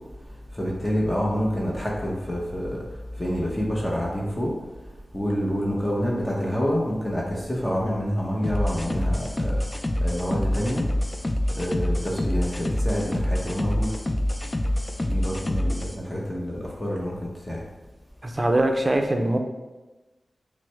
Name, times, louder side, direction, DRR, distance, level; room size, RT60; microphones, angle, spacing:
voice 1, 0.6-2.8 3.2-4.5 5.1-9.6 10.0-10.8 11.6-12.5 12.8-13.9 15.0-17.1 17.5-17.6, equal, 15° left, -4 dB, 0.8 m, -27 dB
sound 1, 8.4-16.0, left 1 dB, 30° left, 0.4 m, -26 dB
voice 2, 18.2-19.4, right 1 dB, 35° right, 4 dB, 0.5 m, -22 dB
5.9 x 2.1 x 3.4 m, 1.1 s
cardioid pair, 55°, 0 cm